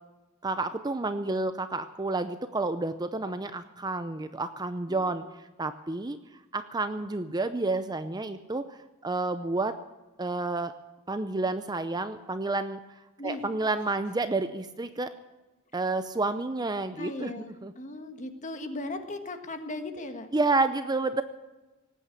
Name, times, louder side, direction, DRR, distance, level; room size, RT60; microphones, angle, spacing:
voice 1, 0.4-6.2 6.5-9.7 10.2-10.7 11.1-12.8 13.2-15.1 15.7-17.7 20.3-21.2, right 3 dB, 20° right, 10 dB, 0.6 m, -30 dB
voice 2, 4.9-5.3 13.2-13.4 17.0-20.3, left 2 dB, 35° left, 7 dB, 1.5 m, -38 dB
19.0 x 9.2 x 8.2 m, 1.1 s
head